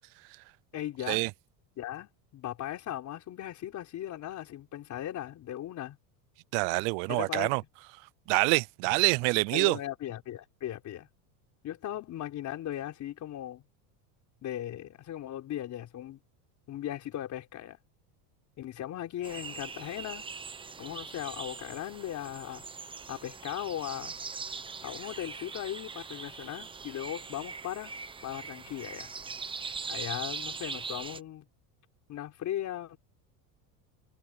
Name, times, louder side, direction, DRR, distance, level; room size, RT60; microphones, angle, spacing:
voice 1, 0.7-1.2 1.8-6.0 7.1-7.5 9.5-11.1 11.6-13.6 14.4-16.2 16.7-17.8 18.6-20.2 20.8-22.6 23.1-24.1 24.8-27.9 28.2-29.1 29.9-31.5 32.1-33.0, left 12 dB, 35° left, 4.1 m, -38 dB
voice 2, 6.5-7.6 8.3-9.8, right 30 dB, 55° right, 0.5 m, -26 dB
sound 1, 19.2-31.2, right 5 dB, 10° right, 0.8 m, -41 dB
cardioid pair, 150°, 48 cm